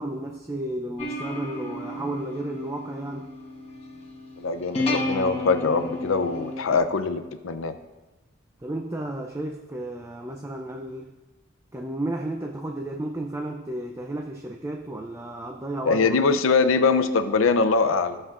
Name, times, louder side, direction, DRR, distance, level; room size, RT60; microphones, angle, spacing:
voice 1, 0.0-3.3 8.6-11.1 11.7-16.3, right 1 dB, 15° right, 2 dB, 0.5 m, -33 dB
sound 1, 1.0-6.8, left 2 dB, 30° left, 1.1 m, -32 dB
voice 2, 4.4-7.8 15.9-18.2, left 4 dB, 90° left, 11 dB, 0.5 m, -22 dB
15.0 x 7.4 x 2.5 m, 1.1 s
head